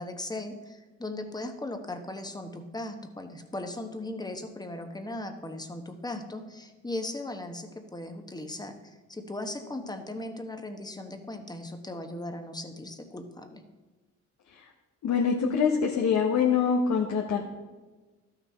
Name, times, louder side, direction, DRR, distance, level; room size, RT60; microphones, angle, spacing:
voice 1, 0.0-13.6, left 1 dB, 15° left, 6 dB, 1.1 m, -38 dB
voice 2, 15.0-17.4, left 6 dB, 65° left, 0 dB, 1.1 m, -24 dB
13.0 x 6.0 x 4.4 m, 1.3 s
cardioid pair, 90°, 30 cm